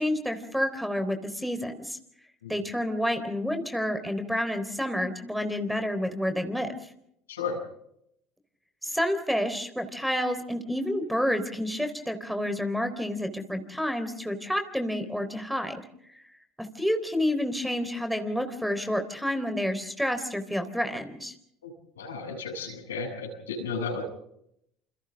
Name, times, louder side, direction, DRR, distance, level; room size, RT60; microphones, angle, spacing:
voice 1, 0.0-2.0 2.5-6.7 8.8-15.7 16.1-16.2 16.6-21.3, equal, ahead, 7 dB, 3.8 m, -29 dB
voice 2, 7.3-7.6 21.6-21.7 22.0-24.0, left 4 dB, 80° left, 1 dB, 7.8 m, -33 dB
29.0 x 28.5 x 3.6 m, 0.74 s
hypercardioid pair, 70°, 0 cm